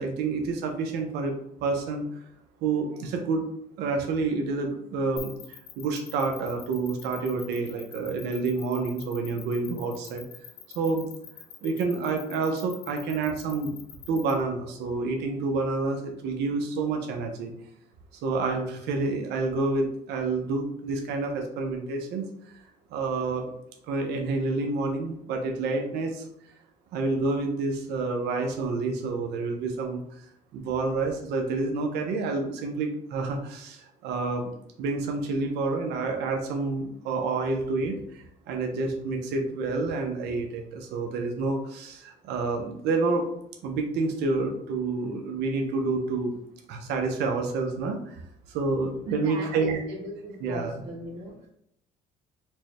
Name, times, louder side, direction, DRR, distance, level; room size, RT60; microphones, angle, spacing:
voice 1, 0.0-1.3 1.6-2.1 2.6-3.5 3.8-10.2 10.7-11.1 11.6-13.7 14.1-17.5 18.2-22.3 22.9-23.5 23.9-26.2 26.9-30.0 30.5-34.5 34.8-43.3 43.6-46.3 46.7-48.2 48.5-49.8 50.4-50.7, right 3 dB, 80° right, 3 dB, 0.6 m, -28 dB
sound 1, 5.2-14.3, left 10 dB, 80° left, 0.7 m, -44 dB
voice 2, 49.1-51.5, right 1 dB, 65° right, -11 dB, 1.4 m, -39 dB
4.4 x 2.1 x 3.1 m, 0.73 s
cardioid pair, 110°, 17 cm